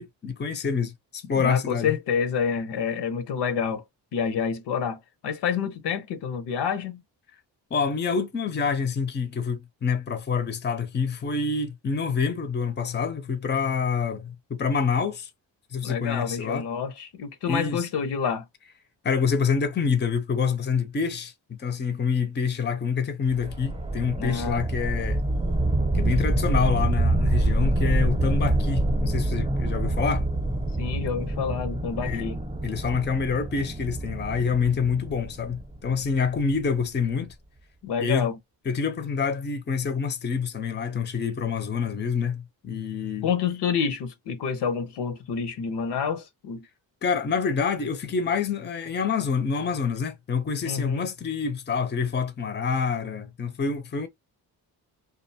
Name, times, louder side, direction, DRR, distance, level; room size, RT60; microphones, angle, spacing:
voice 1, 0.0-1.9 7.7-15.3 15.7-16.6 17.5-17.9 19.0-21.3 21.6-25.2 25.9-30.2 32.0-32.3 32.6-37.3 38.0-38.3 38.7-43.3 47.0-54.1, left 5 dB, 25° left, 0.6 m, -27 dB
voice 2, 1.3-3.8 4.1-7.0 15.8-18.4 24.2-24.7 30.8-32.4 37.8-38.4 43.2-46.6 50.6-51.1, left 6 dB, 70° left, 0.7 m, -28 dB
sound 1, 23.3-36.4, right 1 dB, 15° right, 0.8 m, -26 dB
2.5 x 2.2 x 2.7 m
cardioid pair, 65°, 43 cm